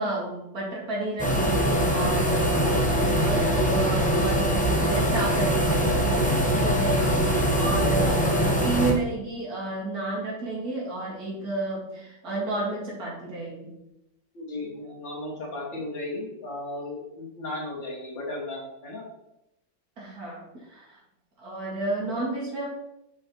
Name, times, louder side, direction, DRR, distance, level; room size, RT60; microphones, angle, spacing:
voice 1, 0.0-2.7 3.2-13.8 20.0-21.0 21.4-22.7, right 2 dB, 55° right, -4 dB, 2.5 m, -31 dB
sound 1, 1.2-8.9, right 1 dB, 5° left, 0.7 m, -23 dB
voice 2, 2.6-2.9 7.7-8.1 14.3-19.1, left 2 dB, 85° left, -2 dB, 2.5 m, -35 dB
6.9 x 5.7 x 3.0 m, 0.84 s
omnidirectional pair, 2.0 m